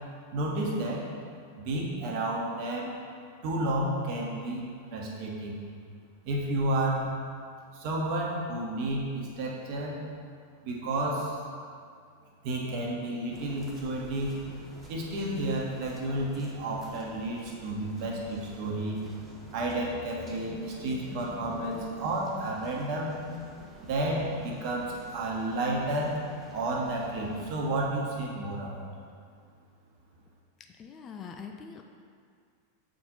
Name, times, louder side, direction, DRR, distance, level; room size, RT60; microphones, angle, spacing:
voice 1, 0.3-1.1 1.5-2.9 3.4-4.7 4.9-5.6 6.3-7.1 7.7-10.0 10.6-11.4 12.4-14.4 14.9-19.0 19.5-23.1 23.8-26.2 26.5-28.9, right 1 dB, 45° right, -1 dB, 1.2 m, -31 dB
sound 1, 13.3-27.5, right 1 dB, 15° right, 1.0 m, -49 dB
voice 2, 30.8-31.8, left 6 dB, 25° left, 4 dB, 0.4 m, -43 dB
7.3 x 4.3 x 4.1 m, 2.2 s
figure-of-eight pair, 90°, 0 cm